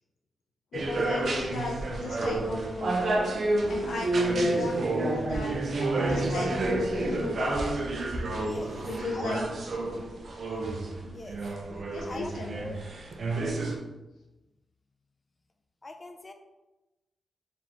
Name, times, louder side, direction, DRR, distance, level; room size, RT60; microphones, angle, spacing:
voice 1, 0.7-3.1 3.7-5.5 6.0-7.6 8.8-9.5 11.0-11.3 11.9-12.7, left 3 dB, 80° left, -1 dB, 0.7 m, -35 dB
sound 1, 0.7-13.8, right 2 dB, 55° right, 0.5 m, -29 dB
voice 2, 8.4-9.5 11.1-11.4 11.9-12.8 15.8-16.3, left 2 dB, 25° left, 6 dB, 0.4 m, -42 dB
3.8 x 3.5 x 2.9 m, 1.0 s
wide cardioid pair, 130°, 0 cm